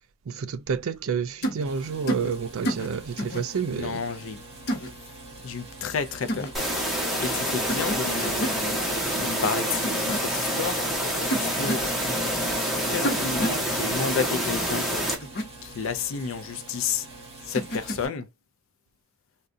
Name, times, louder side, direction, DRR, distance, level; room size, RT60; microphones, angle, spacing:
voice 1, 0.3-4.0, right 6 dB, 85° right, 0.4 m, -29 dB
sound 1, 1.4-1.6 2.1-2.3 2.6-2.9 3.2-3.4 4.7-4.9 6.3-6.5 7.7-8.0 8.2-8.6 9.8-10.2 11.3-11.9 13.0-13.6 15.2-15.4 17.5-18.1, right 1 dB, 50° left, 0.8 m, -29 dB
sound 2, 1.6-18.1, right 2 dB, 30° right, 1.4 m, -45 dB
voice 2, 3.7-4.4 5.4-6.5 6.9-10.8 11.3-12.3 12.8-15.1 15.6-17.1 17.4-18.3, left 5 dB, 75° left, 0.4 m, -31 dB
sound 3, 6.5-15.2, equal, ahead, 0.9 m, -27 dB
3.7 x 2.3 x 2.5 m
head